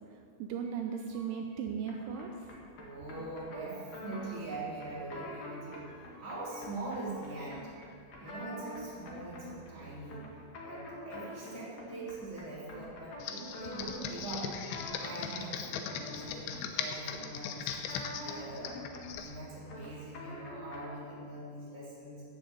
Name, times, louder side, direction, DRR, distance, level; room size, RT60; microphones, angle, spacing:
voice 1, 0.4-2.5, right 7 dB, 80° right, 4 dB, 3.0 m, -37 dB
sound 1, 0.6-1.6 1.9-2.6 2.9-4.3 4.6-5.6 5.9-6.6 6.9-8.4, right 1 dB, 50° right, 2.9 m, -59 dB
sound 2, 1.9-21.1, left 1 dB, 45° left, 2.4 m, -47 dB
voice 2, 2.7-7.7 8.2-10.3 10.6-14.5 15.0-18.7 19.1-22.2, right 2 dB, 20° right, -7 dB, 3.3 m, -42 dB
Computer keyboard, 13.2-19.3, left 8 dB, 75° left, 3.0 m, -39 dB
14.5 x 6.8 x 8.1 m, 2.4 s
omnidirectional pair, 5.6 m